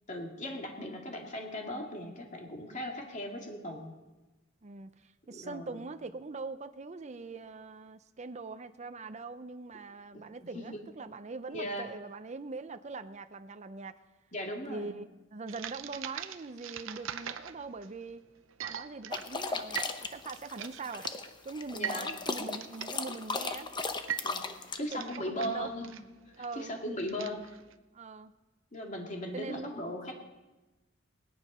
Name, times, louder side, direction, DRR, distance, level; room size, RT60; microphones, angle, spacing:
voice 1, 0.1-3.9 5.3-5.8 10.1-10.2 10.5-10.8 11.5-11.9 14.3-15.0 21.7-22.1 24.2-24.5 24.8-25.9 26.4-27.5 28.7-30.1, equal, 40° left, 1 dB, 2.4 m, -38 dB
voice 2, 4.6-13.9 14.7-15.0 15.3-18.2 18.6-21.1 21.4-23.7 24.8-25.7 26.4-26.7 27.9-28.3 29.3-29.7, right 3 dB, 35° right, 10 dB, 0.6 m, -42 dB
sound 1, 15.5-27.7, right 9 dB, 75° right, 0.7 m, -42 dB
sound 2, 19.1-24.8, left 4 dB, 25° left, 0.8 m, -36 dB
19.0 x 10.0 x 5.5 m, 1.1 s
head